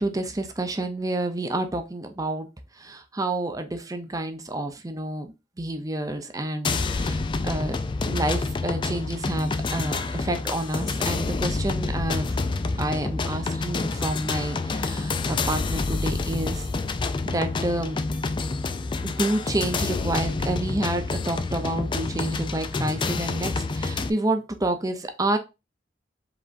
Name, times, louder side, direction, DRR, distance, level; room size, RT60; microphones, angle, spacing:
voice 1, 0.0-2.5 2.8-7.8 8.0-12.3 12.8-16.6 17.2-18.0 19.0-25.4, right 1 dB, 20° right, 7 dB, 0.6 m, -29 dB
sound 1, 6.6-24.1, left 3 dB, 25° left, 0.3 m, -28 dB
4.9 x 3.5 x 2.5 m, 0.26 s
head